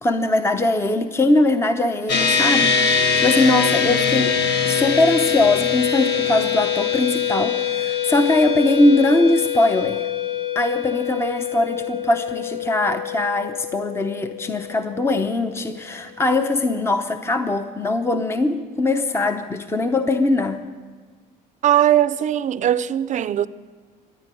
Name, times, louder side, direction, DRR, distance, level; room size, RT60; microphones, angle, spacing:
voice 1, 0.0-10.1 10.5-20.6, left 2 dB, 15° left, 0.7 m, -21 dB
sound 1, 2.1-15.7, left 7 dB, 85° left, 1.5 m, -23 dB
voice 2, 21.6-23.5, right 11 dB, 45° right, 0.5 m, -19 dB
13.5 x 10.5 x 9.1 m
cardioid pair, 110°, 17 cm